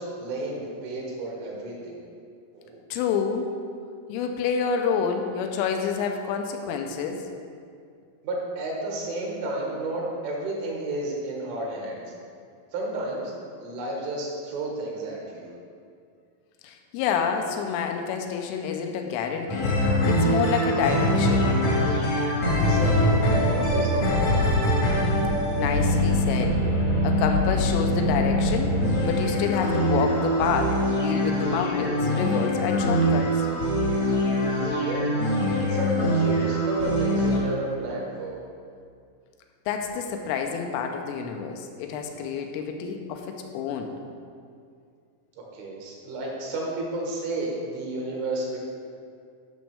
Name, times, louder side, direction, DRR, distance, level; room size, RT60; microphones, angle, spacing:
voice 1, 0.0-2.0 2.5-2.8 8.2-12.0 12.7-13.3 13.6-15.5 22.6-24.5 34.2-34.4 34.8-35.1 35.6-38.4 45.5-48.6, right 2 dB, 75° right, -2 dB, 3.8 m, -32 dB
voice 2, 2.9-3.5 4.1-7.2 16.6-21.5 25.6-26.6 27.0-28.7 29.1-33.5 39.7-43.9, left 6 dB, 85° left, 4 dB, 3.2 m, -28 dB
sound 1, 19.5-37.4, equal, 65° left, 1.6 m, -23 dB
12.0 x 6.3 x 3.4 m, 2.3 s
omnidirectional pair, 5.8 m